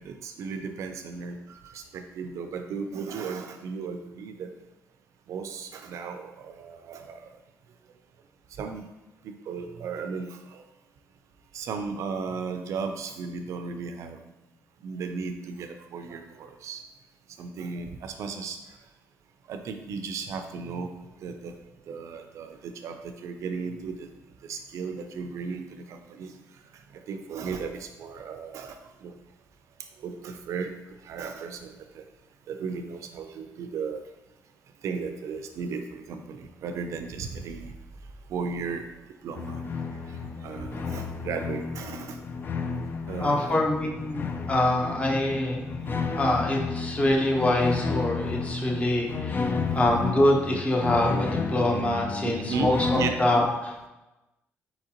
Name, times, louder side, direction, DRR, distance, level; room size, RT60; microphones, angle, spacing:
voice 1, 0.0-4.5 5.3-7.3 8.6-8.8 9.2-10.7 11.5-14.2 14.8-16.8 17.4-18.6 19.5-20.9 21.2-21.6 21.9-24.1 24.4-26.4 26.9-29.1 30.0-30.7 31.0-32.0 32.5-34.0 34.8-37.7 38.3-38.9 39.2-39.6 40.1-42.2 43.1-43.6 49.6-49.8 52.2-52.7 53.0-53.2, right 5 dB, 70° right, 7 dB, 0.5 m, -35 dB
sound 1, 39.3-53.1, left 4 dB, 40° left, 0.4 m, -32 dB
voice 2, 43.2-53.9, left 1 dB, 25° left, 0 dB, 0.8 m, -25 dB
4.3 x 3.8 x 2.9 m, 1.0 s
cardioid pair, 95°, 5 cm